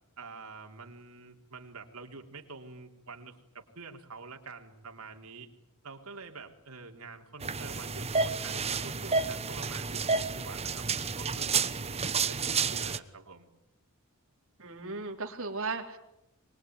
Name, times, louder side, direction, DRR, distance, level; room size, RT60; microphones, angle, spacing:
voice 1, 0.2-5.5 5.8-13.5, right 4 dB, 90° right, 3 dB, 3.6 m, -47 dB
sound 1, 7.4-13.0, right 5 dB, 30° right, 1.1 m, -30 dB
voice 2, 14.6-16.0, right 3 dB, 65° right, 3 dB, 3.9 m, -36 dB
24.5 x 22.0 x 9.6 m, 0.86 s
head